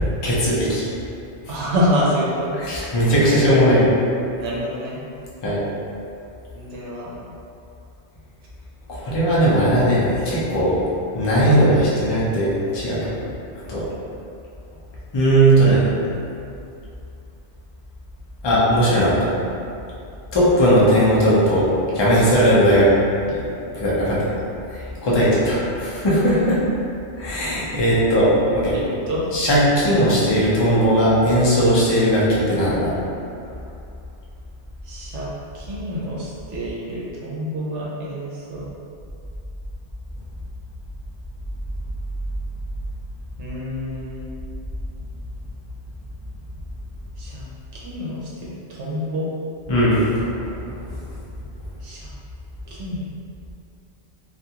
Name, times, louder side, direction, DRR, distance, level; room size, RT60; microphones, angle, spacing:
voice 1, 0.2-0.9 1.5-1.6 2.6-3.9 5.4-5.6 8.9-10.9 11.1-13.2 13.6-13.9 15.1-15.8 18.4-19.1 20.3-21.7 21.9-22.9 23.3-23.4 23.7-24.3 24.7-26.6 27.2-28.8 29.3-32.9 49.7-50.8, equal, 35° left, -8 dB, 0.4 m, -18 dB
voice 2, 1.5-2.5 4.4-5.0 6.5-7.1 28.7-29.2 34.9-35.3 35.5-38.7 43.4-44.2 47.2-47.4 47.7-49.3 51.8-52.1 52.7-53.1, equal, 75° right, -6 dB, 0.9 m, -27 dB
2.5 x 2.4 x 2.8 m, 2.6 s
omnidirectional pair, 1.2 m